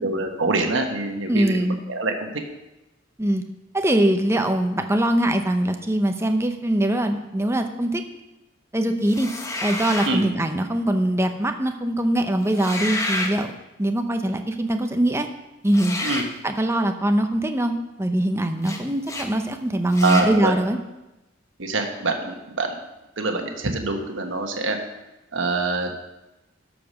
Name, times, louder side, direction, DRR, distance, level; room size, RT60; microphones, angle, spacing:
voice 1, 0.0-2.4 10.1-10.3 16.0-16.3 20.0-20.5 21.6-22.8 23.2-24.8 25.3-25.9, right 3 dB, 70° right, 3 dB, 1.3 m, -25 dB
voice 2, 1.3-1.8 3.2-3.4 3.7-8.0 8.7-9.3 9.6-13.5 13.8-15.3 15.6-16.0 16.4-20.8, right 1 dB, 15° right, 6 dB, 0.7 m, -22 dB
sound 1, 9.1-10.2 12.5-13.3 15.7-16.3 18.6-18.8 19.1-19.3 19.9-20.3, left 2 dB, 15° left, 1.0 m, -29 dB
12.5 x 5.0 x 6.3 m, 0.99 s
head